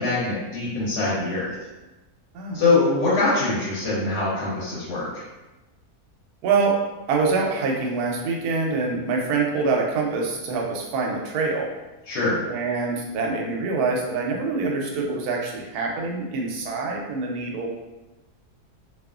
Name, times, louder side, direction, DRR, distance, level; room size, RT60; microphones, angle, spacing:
voice 1, 0.0-1.5 2.5-5.2 12.1-12.4, left 3 dB, 90° left, -8 dB, 1.3 m, -23 dB
voice 2, 6.4-6.8 7.1-11.7 12.5-17.7, right 4 dB, 80° right, 0 dB, 1.1 m, -25 dB
2.7 x 2.4 x 2.3 m, 1.1 s
omnidirectional pair, 1.6 m